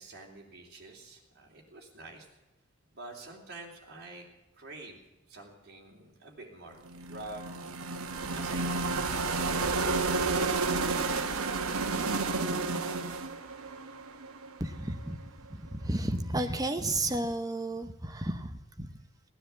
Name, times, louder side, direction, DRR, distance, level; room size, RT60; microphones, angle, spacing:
voice 1, 0.0-2.3 2.9-4.2 4.5-5.0 5.3-7.5 8.2-8.8 16.4-16.6, right 2 dB, 45° right, -1 dB, 3.3 m, -47 dB
sound 1, 6.8-14.9, right 3 dB, 85° right, 1.2 m, -31 dB
voice 2, 14.6-15.2 15.5-18.9, right 1 dB, 15° right, 8 dB, 0.9 m, -32 dB
17.5 x 10.0 x 8.3 m, 1.1 s
head